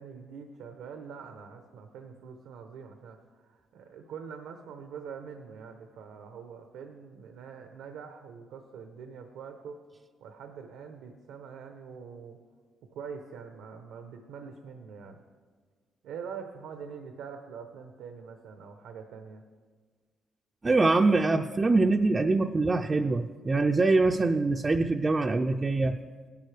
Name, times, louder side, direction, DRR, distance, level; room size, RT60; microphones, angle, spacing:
voice 1, 0.0-9.8 10.2-12.4 12.9-15.2 16.0-19.4, right 6 dB, 90° right, 5 dB, 0.8 m, -44 dB
voice 2, 20.6-26.0, right 3 dB, 25° right, 3 dB, 0.4 m, -24 dB
17.0 x 10.5 x 3.4 m, 1.6 s
cardioid pair, 90°, 0 cm